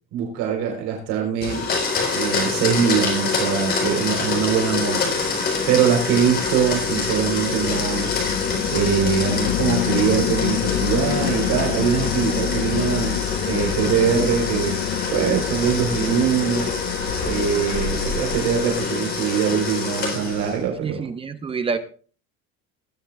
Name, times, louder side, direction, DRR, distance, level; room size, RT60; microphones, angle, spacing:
voice 1, 0.1-1.6 2.1-5.1 5.4-8.1 8.4-14.7 15.1-16.7 17.2-21.0, right 7 dB, 70° right, 1 dB, 4.3 m, -23 dB
Domestic sounds home sounds, 1.4-20.6, left 4 dB, 30° left, 4.5 m, -26 dB
sound 1, 5.1-19.1, left 16 dB, 70° left, 0.6 m, -29 dB
sound 2, 8.2-18.9, left 4 dB, 50° left, 1.5 m, -37 dB
voice 2, 20.8-21.8, right 5 dB, 15° right, 9 dB, 0.6 m, -27 dB
20.0 x 10.0 x 2.5 m, 0.40 s
cardioid pair, 175°, 32 cm